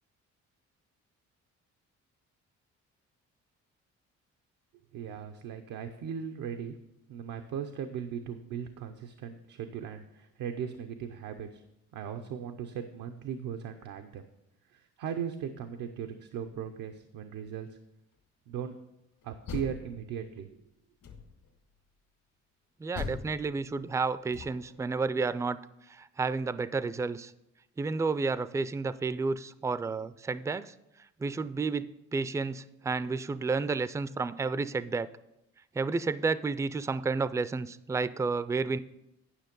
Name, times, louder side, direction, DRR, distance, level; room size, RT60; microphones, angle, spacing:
voice 1, 4.9-6.7 7.1-11.6 11.9-14.3 14.7-17.8 18.5-18.7 19.2-20.5, right 8 dB, 90° right, 6 dB, 0.7 m, -38 dB
Door, 19.2-20.4 21.0-21.6 22.9-24.8, left 5 dB, 75° left, 1.9 m, -42 dB
voice 2, 22.8-25.6 25.9-27.3 27.8-30.7 31.2-35.1 35.7-38.8, right 4 dB, 10° right, 15 dB, 0.3 m, -31 dB
10.0 x 5.9 x 5.2 m, 0.87 s
cardioid pair, 90°, 30 cm